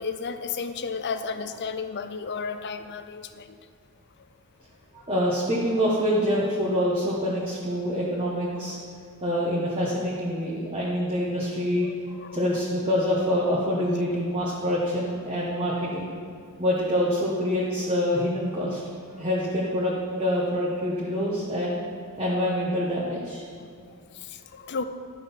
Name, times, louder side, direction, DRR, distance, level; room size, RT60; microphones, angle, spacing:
voice 1, 0.0-3.6 5.0-5.1 11.8-12.6 19.1-19.2 24.1-24.8, left 5 dB, 50° left, 10 dB, 0.6 m, -33 dB
voice 2, 5.1-8.8 9.2-11.9 12.3-16.1 16.6-18.8 19.2-21.8 22.2-23.4, equal, 25° right, -6 dB, 1.4 m, -26 dB
12.0 x 6.5 x 5.7 m, 2.3 s
head